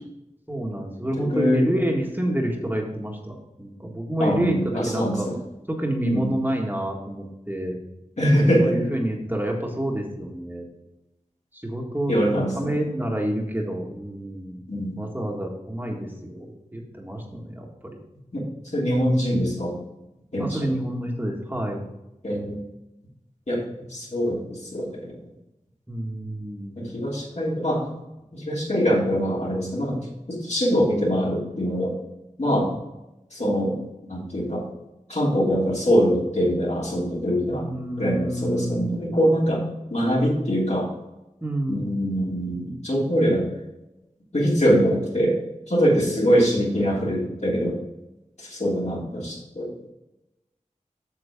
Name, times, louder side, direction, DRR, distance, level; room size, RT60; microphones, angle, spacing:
voice 1, 0.5-5.3 5.7-7.8 8.6-10.7 11.5-14.6 15.0-18.0 20.4-21.8 25.9-26.9 37.4-39.0 41.4-41.9, right 1 dB, 15° right, -1 dB, 1.8 m, -28 dB
voice 2, 1.2-1.6 4.2-5.3 6.0-6.4 8.2-8.8 12.1-12.7 14.7-15.0 18.3-18.5 18.7-19.8 20.3-20.7 22.2-22.6 23.5-25.2 26.8-27.9 28.3-30.0 30.3-32.0 32.4-32.8 33.3-34.7 35.1-37.7 38.0-40.9 41.7-43.5 44.3-45.4 45.7-47.8 48.4-49.7, equal, 60° left, -4 dB, 3.0 m, -23 dB
8.4 x 6.6 x 3.7 m, 0.94 s
wide cardioid pair, 50°, 13 cm